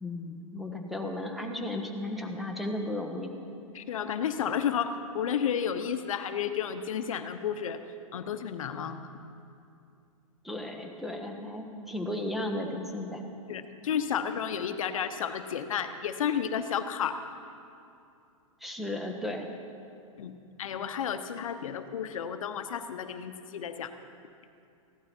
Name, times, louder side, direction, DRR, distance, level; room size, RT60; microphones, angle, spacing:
voice 1, 0.0-3.3 10.4-13.2 18.6-19.5, left 1 dB, ahead, 3 dB, 1.1 m, -35 dB
voice 2, 3.7-7.8 8.1-9.0 13.5-17.2 20.2-20.3 20.6-23.9, left 8 dB, 70° left, 9 dB, 0.9 m, -32 dB
15.5 x 12.0 x 4.4 m, 2.5 s
hypercardioid pair, 135°, 18 cm